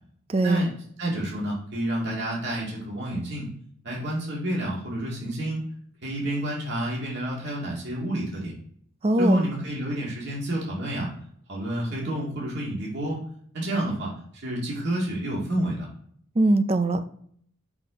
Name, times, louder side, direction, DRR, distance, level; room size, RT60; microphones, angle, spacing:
voice 1, 0.3-0.7 9.0-9.4 16.4-17.1, right 2 dB, 30° right, 11 dB, 0.4 m, -21 dB
voice 2, 1.0-3.5 3.8-5.6 6.0-8.5 9.2-11.1 11.5-13.2 13.5-14.1 14.4-15.9, right 1 dB, 55° right, -4 dB, 2.1 m, -29 dB
5.9 x 4.2 x 5.0 m, 0.64 s
head